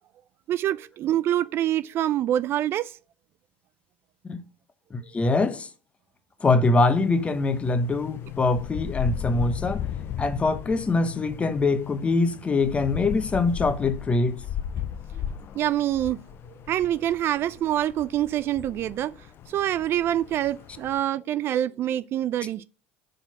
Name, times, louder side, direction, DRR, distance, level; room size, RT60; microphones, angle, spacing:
voice 1, 0.5-2.9 15.5-16.2 16.7-19.1 19.5-22.6, right 12 dB, 50° right, 0.3 m, -25 dB
voice 2, 4.9-5.7 6.4-9.8 10.2-14.4, left 3 dB, 25° left, 0.9 m, -23 dB
sound 1, 6.9-21.0, left 9 dB, 45° left, 0.5 m, -36 dB
6.5 x 4.4 x 5.8 m
supercardioid pair, 90°, 5 cm